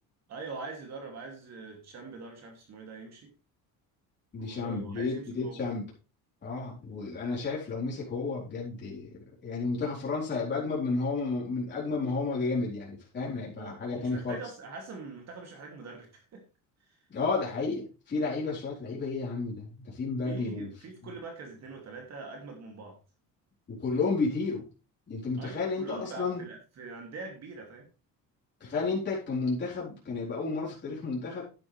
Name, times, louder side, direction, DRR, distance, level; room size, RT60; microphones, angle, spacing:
voice 1, 0.3-3.3 4.4-5.6 13.6-16.4 16.8-17.0 20.2-23.0 25.4-27.9, right 4 dB, 45° right, 2 dB, 2.7 m, -43 dB
voice 2, 4.3-5.9 6.4-9.1 9.4-14.4 17.1-20.7 23.7-24.7 25.1-26.4 28.6-31.4, left 3 dB, 30° left, -6 dB, 4.2 m, -32 dB
11.0 x 10.0 x 3.4 m, 0.33 s
cardioid pair, 155°, 36 cm